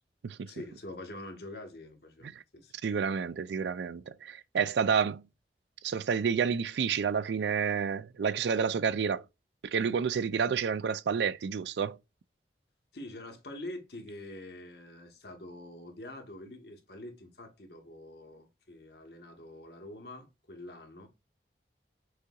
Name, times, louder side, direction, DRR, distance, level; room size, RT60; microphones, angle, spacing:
voice 1, 0.5-2.7 12.9-21.1, left 1 dB, 65° left, 1.3 m, -45 dB
voice 2, 2.8-5.2 5.8-9.2 9.6-12.0, right 6 dB, 80° right, 0.4 m, -29 dB
6.2 x 2.9 x 2.4 m
head